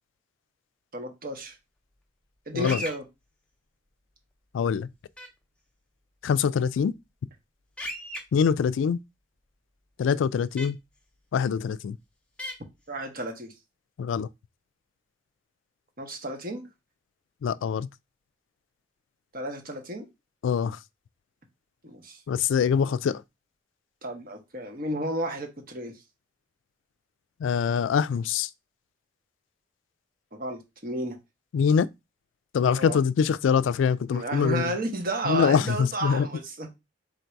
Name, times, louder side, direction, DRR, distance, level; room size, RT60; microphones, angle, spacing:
voice 1, 0.9-1.5 2.5-3.0 12.9-13.5 16.0-16.6 19.3-20.0 21.8-22.2 24.0-25.9 30.3-31.2 32.7-33.0 34.1-36.7, right 1 dB, 50° right, 1.2 m, -32 dB
sound 1, 2.6-3.0 5.2-5.3 7.8-8.2 10.6-10.7 12.4-12.5, equal, 5° left, 0.8 m, -35 dB
voice 2, 4.5-4.9 6.2-6.9 8.3-9.0 10.0-10.8 11.3-12.0 14.0-14.3 17.4-17.9 20.4-20.8 22.3-23.2 27.4-28.5 31.5-31.9 32.5-34.7 35.3-36.3, left 7 dB, 80° left, 0.3 m, -24 dB
3.8 x 2.6 x 4.4 m
head